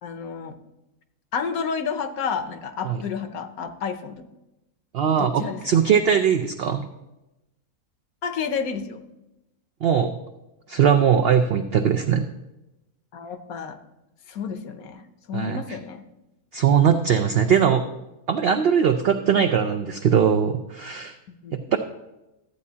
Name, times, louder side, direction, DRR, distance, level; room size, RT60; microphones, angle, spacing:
voice 1, 0.0-0.6 1.3-4.2 5.2-5.6 8.2-9.0 13.1-13.8 14.3-16.1 17.6-17.7 21.3-21.7, left 6 dB, 70° left, 9 dB, 1.2 m, -31 dB
voice 2, 4.9-6.9 9.8-10.1 10.7-12.3 15.3-15.6 16.5-17.8 18.3-21.2 21.7-21.8, right 7 dB, 90° right, 7 dB, 0.5 m, -20 dB
13.0 x 8.4 x 2.8 m, 0.95 s
omnidirectional pair, 1.6 m